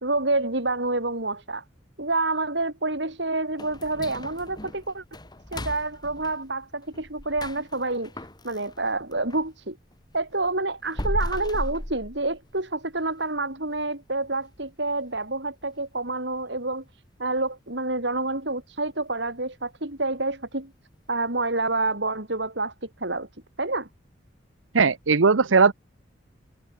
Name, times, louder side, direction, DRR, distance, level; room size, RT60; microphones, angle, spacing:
voice 1, 0.0-1.6 2.0-5.0 5.5-9.8 10.1-16.8 17.2-20.7 21.1-23.3 23.6-23.9, right 2 dB, 60° right, 4.5 m, -28 dB
sound 1, 3.6-9.5 9.9-12.7 13.1-13.2 13.7-13.8 14.3-14.6 15.0-15.1 15.6-15.7, left 1 dB, 20° left, 2.6 m, -36 dB
voice 2, 24.7-25.7, right 4 dB, 90° right, 0.8 m, -18 dB
head